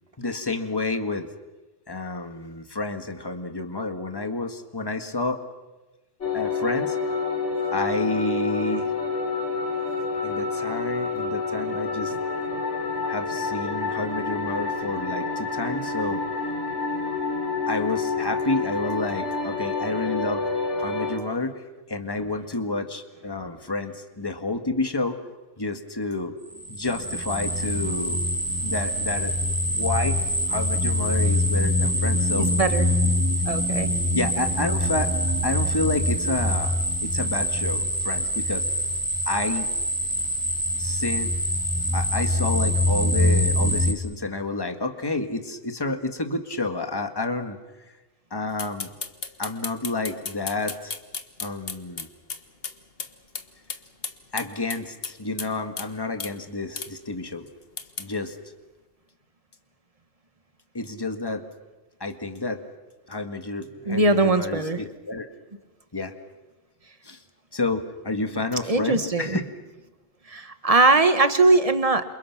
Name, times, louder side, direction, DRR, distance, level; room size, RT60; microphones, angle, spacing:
voice 1, 0.2-1.3 1.9-5.4 6.3-7.0 7.7-8.9 10.2-12.1 13.1-16.2 17.7-20.4 20.8-25.2 25.6-26.4 26.7-28.2 28.6-29.4 29.7-32.5 34.1-35.1 35.4-36.7 37.0-38.7 39.3-39.7 40.8-41.3 41.9-47.6 48.3-48.9 49.4-50.9 51.4-52.1 54.3-57.5 58.0-58.4 60.7-61.5 62.0-62.6 63.1-65.3 65.9-66.2 67.0-67.2 67.5-69.4, left 2 dB, 20° left, 7 dB, 1.7 m, -30 dB
sound 1, 6.2-21.2, left 4 dB, 85° left, 4.0 m, -28 dB
sound 2, 26.6-43.9, equal, 15° right, 3.5 m, -24 dB
voice 2, 32.4-32.9 33.5-33.9 63.9-64.8 68.6-69.4 70.3-72.0, right 3 dB, 30° right, 9 dB, 1.6 m, -20 dB
sound 3, 48.6-52.7 53.0-53.1 53.4-53.5 53.7-55.5 55.8-55.9 56.2-56.3 56.8-56.9 57.8-58.1, left 5 dB, 55° left, 1.6 m, -33 dB
28.5 x 28.0 x 6.0 m, 1.1 s
omnidirectional pair, 1.2 m